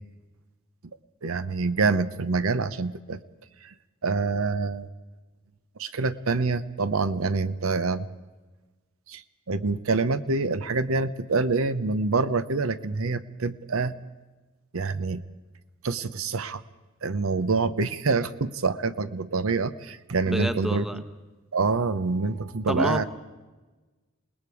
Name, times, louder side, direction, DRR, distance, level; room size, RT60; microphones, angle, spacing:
voice 1, 1.2-3.2 3.6-3.7 4.0-4.9 5.8-8.1 9.1-14.0 14.7-15.2 15.8-16.6 17.0-21.0 21.5-23.0, right 4 dB, 75° right, 13 dB, 0.7 m, -26 dB
voice 2, 20.2-21.0 22.7-23.0, equal, ahead, 8 dB, 1.0 m, -28 dB
28.0 x 19.5 x 4.8 m, 1.2 s
head